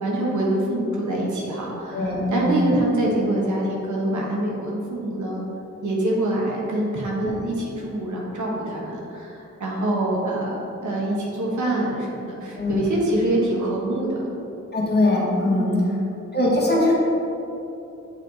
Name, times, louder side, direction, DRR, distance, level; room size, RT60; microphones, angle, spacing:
voice 1, 0.0-5.4 5.8-14.2 15.4-16.0, right 1 dB, 75° right, -3 dB, 1.2 m, -25 dB
voice 2, 1.9-2.6 7.2-7.4 12.5-12.9 14.7-15.7 16.3-16.9, left 1 dB, 35° left, -4 dB, 1.4 m, -21 dB
7.2 x 3.4 x 4.0 m, 2.9 s
cardioid pair, 65°, 30 cm